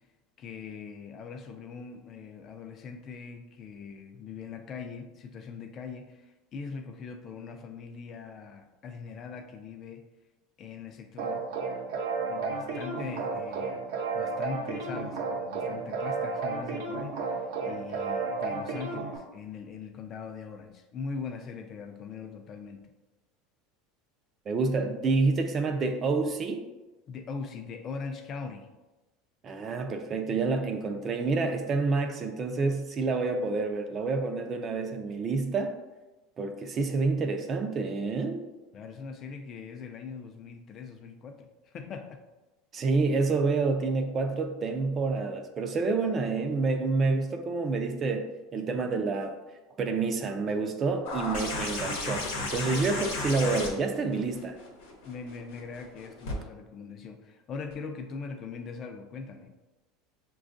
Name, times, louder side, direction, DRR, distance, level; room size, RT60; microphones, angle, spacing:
voice 1, 0.4-10.1 10.6-11.4 12.3-13.9 14.1-22.8 27.1-28.7 38.7-42.2 55.0-59.5, left 5 dB, 40° left, 6 dB, 0.5 m, -41 dB
sound 1, 11.2-19.2, right 4 dB, 80° right, 0.7 m, -32 dB
voice 2, 24.5-26.6 29.4-35.7 36.4-38.4 42.7-49.3 49.8-54.6, right 3 dB, 35° right, 5 dB, 0.5 m, -28 dB
sound 2, 51.0-56.3 57.7-57.8, left 2 dB, 90° left, 0.9 m, -34 dB
6.1 x 2.3 x 2.5 m, 1.1 s
supercardioid pair, 120°, 0 cm